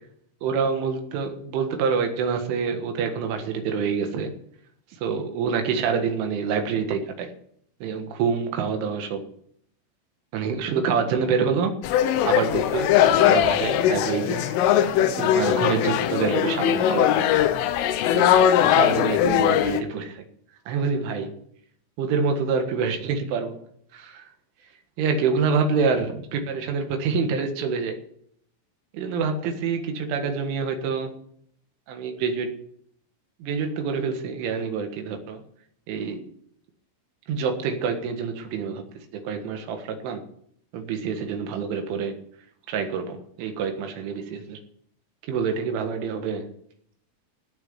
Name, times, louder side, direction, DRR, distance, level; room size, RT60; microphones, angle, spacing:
voice 1, 0.4-4.3 5.0-7.3 7.8-9.3 10.3-11.8 12.3-12.9 13.2-14.5 15.2-17.5 18.1-18.3 18.6-20.2 20.7-21.3 22.0-23.6 23.9-24.3 25.0-28.0 28.9-31.2 31.9-32.5 33.4-35.4 35.9-36.3 37.3-38.8 39.1-40.2 40.7-42.2 42.7-44.6 45.3-46.5, right 5 dB, 75° right, 5 dB, 4.0 m, -26 dB
sound 1, 11.8-19.8, left 10 dB, 85° left, 3.4 m, -20 dB
16.5 x 7.2 x 8.1 m, 0.67 s
omnidirectional pair, 5.8 m